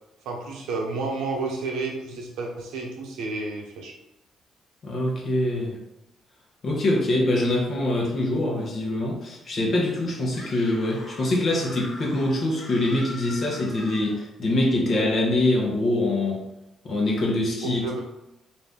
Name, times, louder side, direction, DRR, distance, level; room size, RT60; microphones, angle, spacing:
voice 1, 0.2-3.9 17.6-18.0, right 3 dB, 90° right, 0 dB, 0.7 m, -31 dB
voice 2, 4.8-5.8 6.6-16.4 16.8-17.8, left 1 dB, 50° left, -1 dB, 0.9 m, -24 dB
Screaming, 10.3-14.2, left 2 dB, 90° left, 1.1 m, -42 dB
2.6 x 2.4 x 3.5 m, 0.91 s
cardioid pair, 90°, 0 cm